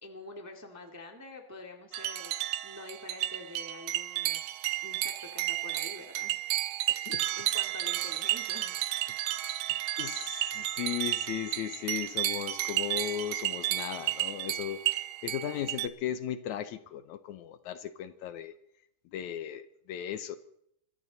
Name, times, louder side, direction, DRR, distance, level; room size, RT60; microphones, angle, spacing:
voice 1, 0.0-4.4 4.8-6.4 6.9-8.8, left 2 dB, 10° right, 3 dB, 1.2 m, -47 dB
sound 1, 1.9-15.9, right 14 dB, 75° right, 1.9 m, -32 dB
voice 2, 6.9-7.3 9.1-9.6 10.0-18.5 19.1-20.4, left 10 dB, 75° left, 12 dB, 2.1 m, -37 dB
25.0 x 14.5 x 4.0 m, 0.72 s
omnidirectional pair, 3.7 m